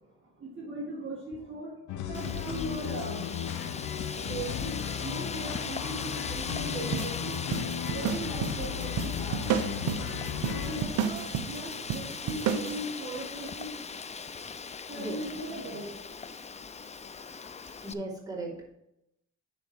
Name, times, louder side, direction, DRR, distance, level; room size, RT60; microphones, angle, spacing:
voice 1, 0.4-1.7 2.1-3.3 4.2-7.4 7.9-9.4 10.4-13.7 14.9-15.9, right 1 dB, 40° right, -2 dB, 1.7 m, -38 dB
sound 1, 1.9-10.8, left 8 dB, 75° left, 0.9 m, -35 dB
Wind, 2.1-17.9, left 5 dB, 20° left, 0.5 m, -39 dB
sound 2, 6.9-12.8, right 8 dB, 75° right, 0.8 m, -32 dB
voice 2, 17.8-18.7, right 2 dB, 10° right, -4 dB, 2.9 m, -37 dB
10.0 x 4.1 x 4.6 m, 0.83 s
cardioid pair, 90°, 30 cm